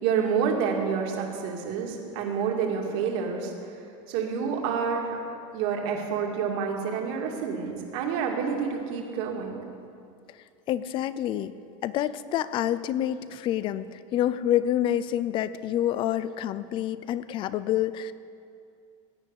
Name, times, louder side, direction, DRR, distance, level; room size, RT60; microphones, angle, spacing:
voice 1, 0.0-3.5 4.1-5.2 5.5-9.6, right 6 dB, 55° right, 1 dB, 2.4 m, -28 dB
voice 2, 10.7-11.5 11.8-18.1, left 11 dB, 30° left, 15 dB, 0.5 m, -27 dB
16.5 x 9.6 x 8.2 m, 2.5 s
supercardioid pair, 165°, 17 cm